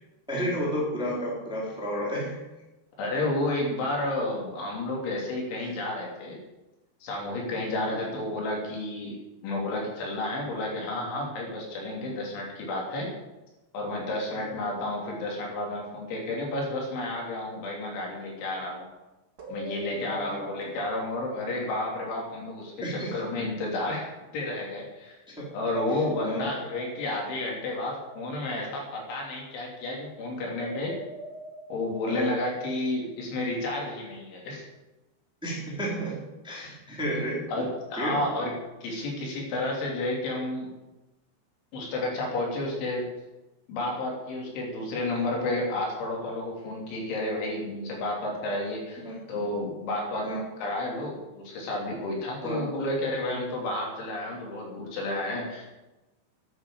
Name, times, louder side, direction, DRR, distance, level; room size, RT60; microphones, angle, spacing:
voice 1, 0.3-2.4 5.6-5.7 7.7-8.0 10.5-10.6 14.3-14.5 20.0-20.4 22.8-23.1 25.3-25.4 25.9-26.5 32.1-32.3 35.4-37.5 38.0-38.2 49.0-49.2 50.2-50.4 52.4-52.6, equal, ahead, -4 dB, 3.1 m, -32 dB
voice 2, 3.0-6.4 7.0-9.2 9.4-13.1 13.7-18.9 19.5-24.1 24.3-25.2 25.5-30.9 31.7-34.6 37.5-38.5 38.8-40.7 41.7-43.0 43.7-49.0 49.3-50.3 50.6-55.9, left 2 dB, 75° left, -2 dB, 5.6 m, -31 dB
sound 1, 19.4-22.3 25.5-28.8 30.5-33.3, right 1 dB, 45° right, 1.4 m, -41 dB
11.0 x 10.5 x 7.7 m, 1.0 s
omnidirectional pair, 5.4 m